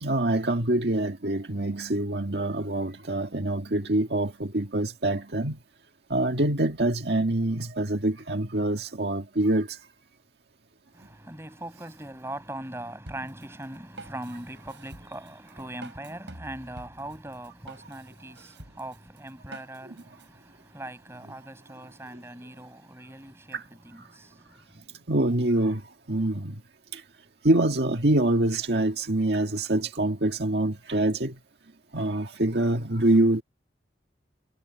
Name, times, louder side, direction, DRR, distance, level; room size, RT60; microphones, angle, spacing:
voice 1, 0.0-5.6 6.1-9.7 23.5-23.6 25.1-25.8 26.1-26.6 26.9-27.0 27.4-31.3 31.9-33.4, right 1 dB, 65° right, 1.8 m, -25 dB
voice 2, 10.9-24.8, right 1 dB, 15° right, 6.5 m, -41 dB
Drum kit, 13.1-20.3, right 2 dB, 85° right, 6.6 m, -47 dB
head